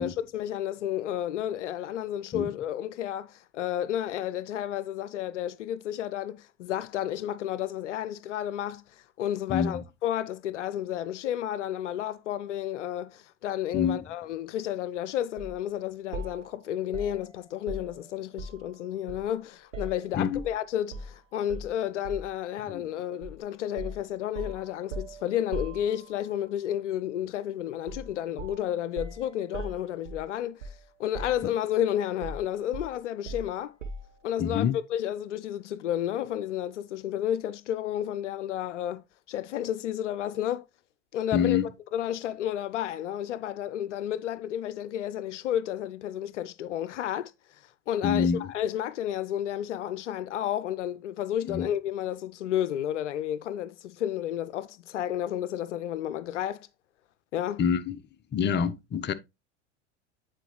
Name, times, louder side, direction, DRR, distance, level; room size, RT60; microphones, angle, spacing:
voice 1, 0.0-33.7 34.2-40.7 41.1-41.6 41.9-56.7 57.3-57.6, left 11 dB, 75° left, 0.5 m, -31 dB
voice 2, 9.5-9.8 13.7-14.0 20.2-20.4 22.7-22.8 34.4-34.7 41.3-41.7 48.0-48.5 51.4-51.7 57.6-58.0 58.3-59.1, left 7 dB, 30° left, 0.8 m, -26 dB
sound 1, 15.4-15.6 16.1-18.7 19.1-20.5 20.9-21.1 21.5-22.4 23.2-23.4 23.8-26.3 27.9-28.1 28.4-30.9 31.1-31.8 32.2-34.2, right 2 dB, 90° right, 1.2 m, -40 dB
9.1 x 4.3 x 3.1 m
hypercardioid pair, 80°, 36 cm